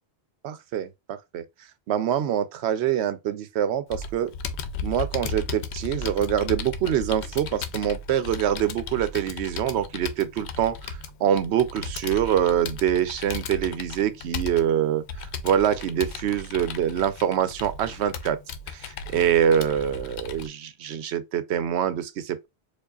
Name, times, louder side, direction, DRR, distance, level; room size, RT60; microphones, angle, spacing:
voice 1, 0.4-1.4 1.9-4.3 4.8-18.4 18.7-22.5, right 10 dB, 85° right, 0.9 m, -25 dB
Computer keyboard, 3.9-20.5, left 4 dB, 85° left, 0.9 m, -35 dB
4.6 x 2.4 x 2.4 m
omnidirectional pair, 1.1 m